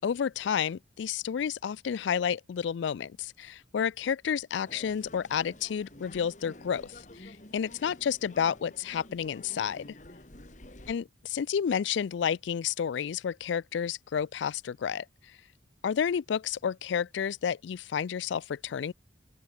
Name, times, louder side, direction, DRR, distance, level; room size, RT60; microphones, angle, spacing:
voice 1, 0.0-9.9 10.9-15.1 15.8-18.9, left 7 dB, 75° left, 0.3 m, -31 dB
sound 1, 4.6-10.9, left 1 dB, 40° left, 2.1 m, -50 dB
open air
head